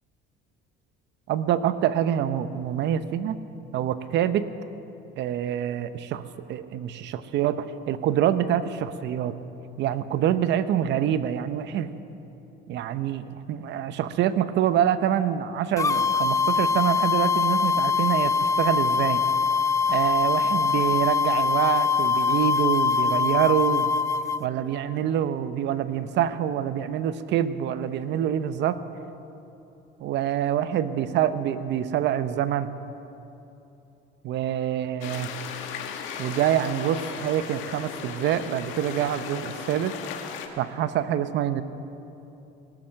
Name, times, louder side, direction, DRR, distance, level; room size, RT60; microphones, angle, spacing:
voice 1, 1.3-3.4 3.7-4.5 5.2-6.2 6.5-9.4 9.8-11.9 12.7-19.2 19.9-23.9 24.4-28.8 30.0-32.7 34.2-35.3 36.2-40.0 40.6-41.6, right 10 dB, 60° right, 13 dB, 0.8 m, -26 dB
sound 1, 15.8-24.4, left 5 dB, 15° left, 0.3 m, -23 dB
sound 2, 35.0-40.5, left 7 dB, 70° left, 1.6 m, -36 dB
18.5 x 12.0 x 6.5 m, 2.9 s
cardioid pair, 120°, 20 cm